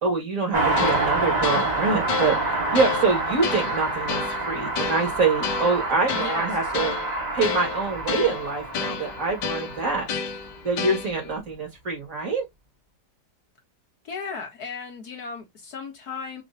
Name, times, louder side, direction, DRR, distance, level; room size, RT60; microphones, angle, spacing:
voice 1, 0.0-7.0 7.3-10.1 10.6-12.5, right 4 dB, 50° right, 2.5 m, -25 dB
Car passing by, 0.5-10.5 10.7-10.8, right 2 dB, 25° right, 1.5 m, -27 dB
sound 1, 0.8-11.4, left 7 dB, 80° left, 1.5 m, -32 dB
voice 2, 6.2-6.7 14.0-16.4, left 5 dB, 65° left, 2.1 m, -36 dB
6.0 x 3.1 x 2.7 m
omnidirectional pair, 1.8 m